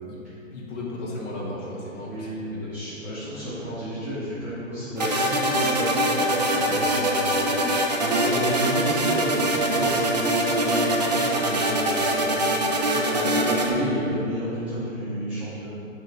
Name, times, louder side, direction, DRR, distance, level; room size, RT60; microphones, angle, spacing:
voice 1, 0.5-2.7 8.3-8.5 12.9-13.4, left 2 dB, 60° left, -5 dB, 1.5 m, -35 dB
voice 2, 2.0-7.5 8.0-12.3 13.3-15.7, equal, 5° right, -19 dB, 1.0 m, -31 dB
sound 1, 5.0-13.7, right 1 dB, 35° right, 0.4 m, -23 dB
6.2 x 3.2 x 5.3 m, 2.8 s
hypercardioid pair, 155°, 40 cm